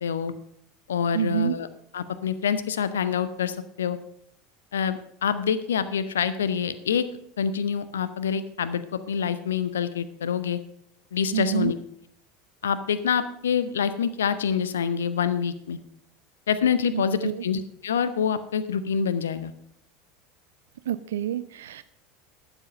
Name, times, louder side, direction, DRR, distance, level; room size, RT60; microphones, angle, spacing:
voice 1, 0.0-0.3 0.9-1.7 1.9-4.0 4.7-7.1 7.4-10.6 11.1-11.8 12.6-15.8 16.5-19.5, left 7 dB, 70° left, 13 dB, 0.7 m, -26 dB
voice 2, 1.1-1.5 11.3-11.7 16.9-17.4 20.9-21.8, right 11 dB, 65° right, 14 dB, 0.3 m, -28 dB
12.0 x 8.0 x 5.4 m, 0.74 s
figure-of-eight pair, 75°, 0 cm